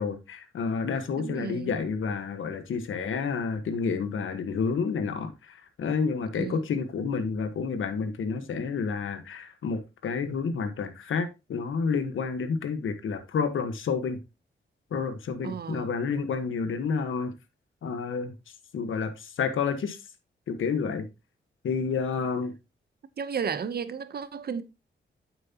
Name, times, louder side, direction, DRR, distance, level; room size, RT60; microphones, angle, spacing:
voice 1, 0.0-14.2 14.9-17.3 17.8-18.3 18.7-20.0 20.5-21.1 21.6-22.5, left 5 dB, 90° left, 1.5 m, -29 dB
voice 2, 1.2-1.7 6.3-6.6 15.4-15.9 23.2-24.6, right 6 dB, 55° right, 0.9 m, -33 dB
9.2 x 7.7 x 2.9 m
wide cardioid pair, 115°, 20 cm